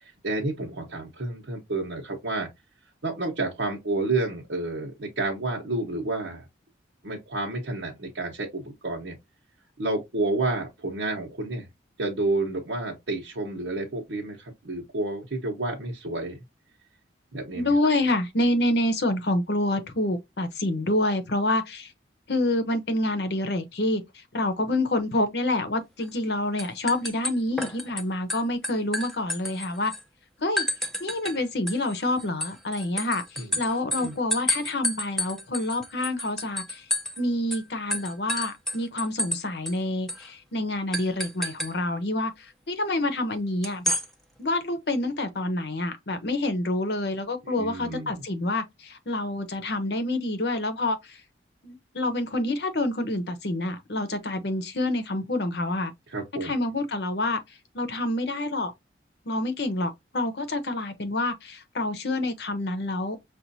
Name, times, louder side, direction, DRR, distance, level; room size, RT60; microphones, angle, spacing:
voice 1, 0.2-2.5 3.0-6.4 7.0-9.2 9.8-11.7 12.0-16.4 17.3-17.7 33.4-33.5 34.0-34.1 47.5-48.3 56.1-56.5, right 2 dB, 75° right, 1.0 m, -30 dB
voice 2, 17.5-21.9 22.3-29.9 30.4-30.6 31.0-36.9 37.2-44.0 44.4-51.2 51.6-55.9 56.4-57.4 57.7-58.7 59.3-63.2, left 1 dB, 60° left, 0.8 m, -27 dB
sound 1, 26.0-26.3 26.6-28.0 28.3-30.0 30.6-31.4 31.7-37.2 37.5-37.6 37.9-39.4 39.7-39.8 40.1-40.3 40.9-41.7 43.6-44.1, left 1 dB, ahead, 0.6 m, -30 dB
6.0 x 2.5 x 2.7 m
head